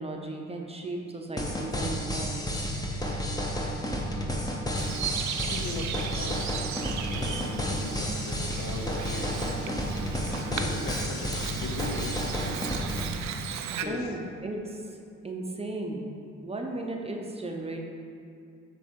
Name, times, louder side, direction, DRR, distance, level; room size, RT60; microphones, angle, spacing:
voice 1, 0.0-2.5 13.8-14.8 15.2-16.1 16.4-17.8, right 2 dB, 20° right, 1 dB, 0.7 m, -35 dB
sound 1, 1.4-13.1, equal, 15° left, 0.7 m, -31 dB
Bird vocalization bird call bird song, 4.8-13.8, right 8 dB, 65° right, 0.5 m, -36 dB
voice 2, 5.4-10.0 10.3-11.3 11.6-12.7 13.8-14.1, left 3 dB, 70° left, 3 dB, 0.8 m, -39 dB
9.1 x 3.4 x 3.6 m, 2.4 s
cardioid pair, 90°, 30 cm